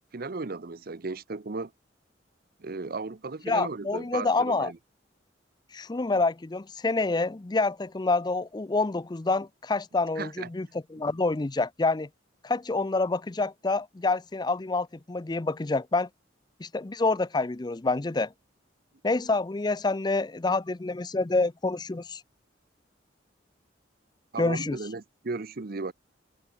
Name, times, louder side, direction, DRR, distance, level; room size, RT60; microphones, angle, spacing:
voice 1, 0.1-1.7 2.6-4.8 10.2-10.5 24.3-25.9, right 3 dB, 50° right, 0.7 m, -35 dB
voice 2, 3.4-4.7 5.7-12.1 12.4-16.1 16.6-18.3 19.0-22.2 24.4-24.8, left 3 dB, 20° left, 0.5 m, -27 dB
head